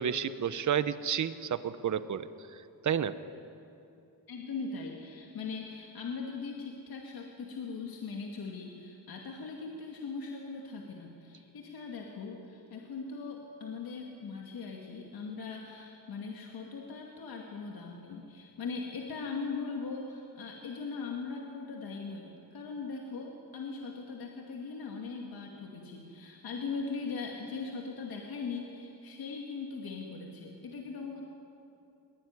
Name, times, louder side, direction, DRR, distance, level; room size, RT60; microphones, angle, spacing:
voice 1, 0.0-2.3 2.8-3.1, right 8 dB, 50° right, 13 dB, 0.9 m, -30 dB
voice 2, 4.3-31.2, left 4 dB, 70° left, 0 dB, 2.5 m, -40 dB
22.5 x 22.0 x 9.7 m, 2.7 s
wide cardioid pair, 170°, 38 cm